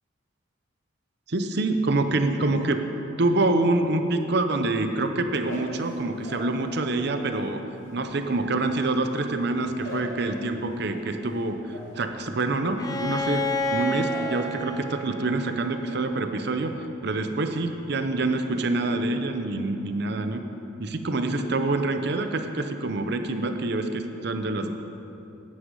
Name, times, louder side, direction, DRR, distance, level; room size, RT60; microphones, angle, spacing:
voice 1, 1.3-2.8 3.2-7.6 7.9-16.7 17.0-20.4 20.8-24.7, right 2 dB, 55° right, 7 dB, 0.7 m, -26 dB
sound 1, 5.3-7.4 7.6-14.4 14.7-15.2 15.5-16.0, equal, 70° left, 2.5 m, -43 dB
Bowed string instrument, 12.8-16.6, left 1 dB, 20° left, 0.5 m, -31 dB
9.7 x 9.4 x 5.4 m, 2.8 s
head